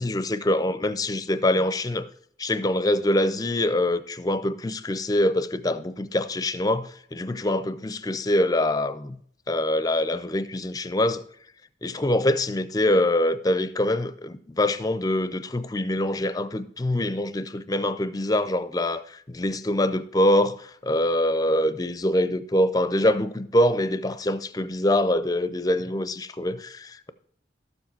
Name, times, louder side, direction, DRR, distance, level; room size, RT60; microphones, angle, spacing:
voice 1, 0.0-2.1 2.4-9.2 9.5-11.2 11.8-27.1, left 1 dB, 20° left, 0.5 m, -24 dB
13.0 x 7.2 x 4.5 m
head